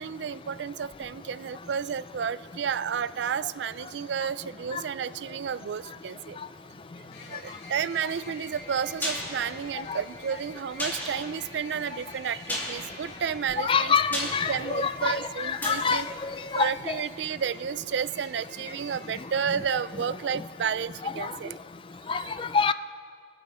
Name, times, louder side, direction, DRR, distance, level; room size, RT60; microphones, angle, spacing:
voice 1, 0.0-6.4 6.9-16.1 16.5-21.5 22.1-22.3, right 7 dB, 75° right, 17 dB, 0.4 m, -32 dB
sound 1, 7.1-19.9, left 2 dB, 65° left, 2.7 m, -48 dB
sound 2, 8.6-17.5 17.8-17.9, left 1 dB, 10° left, 2.4 m, -37 dB
voice 2, 13.6-16.9 21.2-21.3 22.1-22.7, left 5 dB, 30° left, 14 dB, 0.3 m, -26 dB
26.5 x 9.0 x 4.3 m, 2.3 s
head